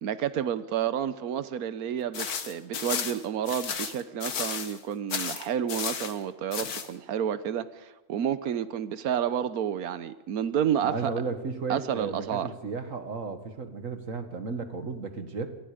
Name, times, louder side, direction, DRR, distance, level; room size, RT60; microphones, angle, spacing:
voice 1, 0.0-11.1 11.7-12.5, right 9 dB, 80° right, 13 dB, 1.4 m, -30 dB
sound 1, 2.1-4.8 5.1-6.1 6.5-6.9, left 6 dB, 90° left, 1.9 m, -33 dB
voice 2, 10.8-15.6, right 4 dB, 60° right, 8 dB, 2.1 m, -34 dB
27.0 x 21.5 x 5.1 m, 1.1 s
omnidirectional pair, 1.5 m